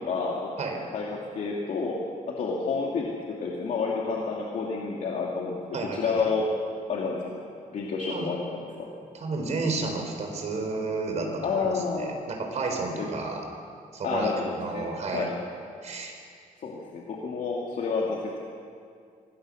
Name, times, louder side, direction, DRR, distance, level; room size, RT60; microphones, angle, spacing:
voice 1, 0.0-0.5 0.9-2.0 2.4-6.5 6.9-7.2 7.7-8.6 11.4-12.2 13.0-13.1 14.0-15.3 16.6-18.4, left 4 dB, 65° left, -3 dB, 2.5 m, -29 dB
voice 2, 5.7-6.3 8.1-8.3 9.1-13.4 13.9-14.3 14.6-15.3 15.8-16.1, right 3 dB, 55° right, 2 dB, 4.2 m, -31 dB
24.5 x 19.5 x 6.4 m, 2.3 s
wide cardioid pair, 165°, 14 cm